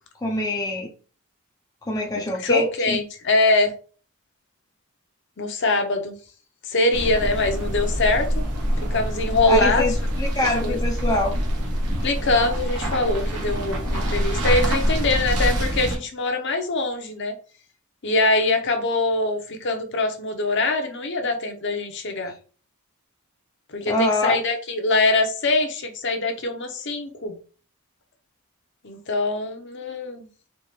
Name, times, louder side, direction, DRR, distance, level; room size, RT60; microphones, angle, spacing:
voice 1, 0.2-0.9 1.8-3.0 9.5-11.3 23.9-24.4, left 1 dB, 15° left, 0.5 m, -24 dB
voice 2, 2.1-3.7 5.4-6.1 6.6-8.4 8.9-9.8 10.6-10.8 12.0-17.3 18.0-22.3 23.7-27.4 28.8-30.3, left 2 dB, 55° left, 0.8 m, -23 dB
sound 1, 6.9-16.0, equal, 90° right, 1.2 m, -25 dB
4.4 x 2.5 x 3.3 m
head